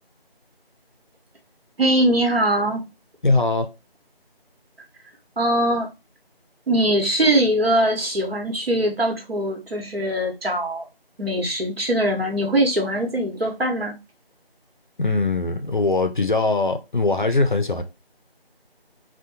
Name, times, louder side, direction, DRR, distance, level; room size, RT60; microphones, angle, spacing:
voice 1, 1.8-2.8 5.4-5.9 6.7-10.8 11.2-13.9, right 1 dB, 75° right, 1.0 m, -21 dB
voice 2, 3.2-3.7 15.0-17.8, left 3 dB, 55° left, 0.4 m, -21 dB
2.6 x 2.2 x 2.7 m
figure-of-eight pair, 175°, 30 cm